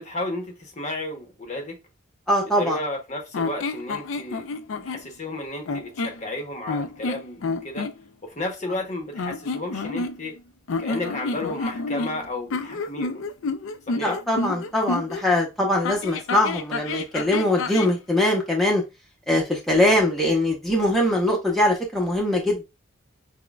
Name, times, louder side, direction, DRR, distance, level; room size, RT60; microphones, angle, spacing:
voice 1, 0.0-1.8 2.4-7.9 8.2-10.4 10.8-13.2 13.9-14.2, left 1 dB, 35° left, 0.8 m, -33 dB
voice 2, 2.3-2.8 14.0-18.8 19.3-22.6, left 1 dB, ahead, 0.7 m, -22 dB
sound 1, 3.3-5.1 5.6-6.2 6.7-7.9 9.1-10.4 10.7-15.2 15.8-18.0, left 3 dB, 75° left, 0.4 m, -29 dB
6.0 x 2.2 x 2.3 m
head